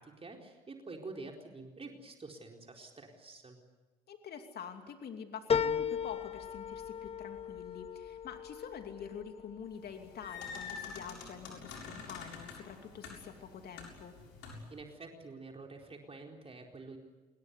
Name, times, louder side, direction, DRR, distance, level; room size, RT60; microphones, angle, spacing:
voice 1, 0.0-3.6 14.7-17.0, right 3 dB, 30° right, 2 dB, 4.4 m, -48 dB
voice 2, 4.1-14.1, left 7 dB, 50° left, 5 dB, 2.8 m, -46 dB
sound 1, 5.5-10.3 10.7-11.4 11.8-11.9, left 7 dB, 30° left, 1.0 m, -36 dB
sound 2, 9.8-14.8, left 5 dB, 70° left, 7.3 m, -47 dB
28.0 x 21.0 x 8.3 m, 1.2 s
hypercardioid pair, 60°, 20 cm